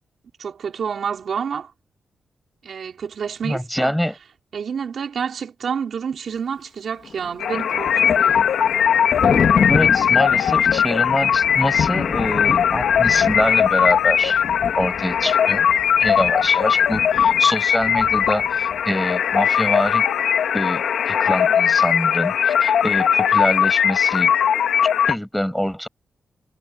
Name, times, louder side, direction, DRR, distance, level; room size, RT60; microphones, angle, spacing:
voice 1, 0.4-1.7 2.6-4.0 4.5-8.5, right 7 dB, 65° right, 4.8 m, -29 dB
voice 2, 3.4-4.1 9.7-14.4 14.8-15.7 16.0-20.0 20.5-24.3 25.1-25.9, equal, 5° left, 7.9 m, -25 dB
Thunder, 7.0-18.8, left 6 dB, 65° left, 3.5 m, -28 dB
sound 1, 7.4-25.2, left 8 dB, 85° left, 2.9 m, -19 dB
cardioid pair, 65°, 0 cm